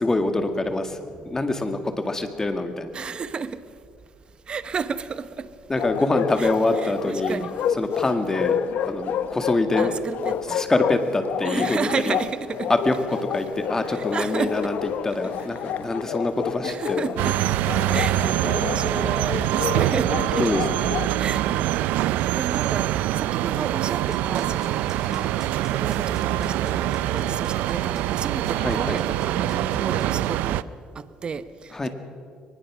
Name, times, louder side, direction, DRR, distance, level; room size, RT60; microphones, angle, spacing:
voice 1, 0.0-1.0 1.2-2.9 5.7-7.4 7.8-8.6 8.9-10.0 10.5-12.2 12.7-14.8 15.0-17.2 20.4-20.9 28.6-29.0 31.7-31.9, left 2 dB, 20° left, 2.1 m, -25 dB
voice 2, 2.9-3.6 4.5-5.5 6.4-7.6 9.8-10.6 11.4-12.7 13.9-14.7 15.1-15.5 16.6-17.4 17.9-20.5 21.2-21.7 22.0-24.8 25.1-30.7 30.9-31.9, right 5 dB, 35° right, 1.0 m, -32 dB
Bark, 5.8-21.1, left 8 dB, 65° left, 0.9 m, -29 dB
sound 1, 17.2-30.6, right 14 dB, 85° right, 0.5 m, -24 dB
sound 2, 24.1-30.4, right 2 dB, 20° right, 5.6 m, -47 dB
23.0 x 20.0 x 6.3 m
cardioid pair, 105°, 3 cm